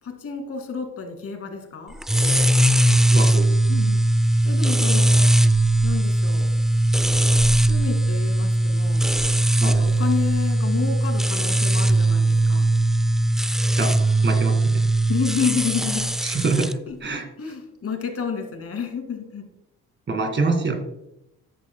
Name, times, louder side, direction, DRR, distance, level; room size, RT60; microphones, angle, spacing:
voice 1, 0.0-1.9 3.7-4.0 4.4-5.3 5.8-6.5 7.6-9.0 9.6-12.7 15.1-16.0 16.9-17.0 17.4-19.4, left 6 dB, 45° left, 4 dB, 2.5 m, -30 dB
sound 1, 2.0-16.7, right 1 dB, ahead, 0.4 m, -19 dB
voice 2, 2.9-3.5 9.6-9.8 13.8-14.8 16.2-17.3 20.1-20.8, right 3 dB, 35° right, 5 dB, 2.1 m, -26 dB
13.5 x 10.0 x 2.3 m, 0.87 s
cardioid pair, 100°, 31 cm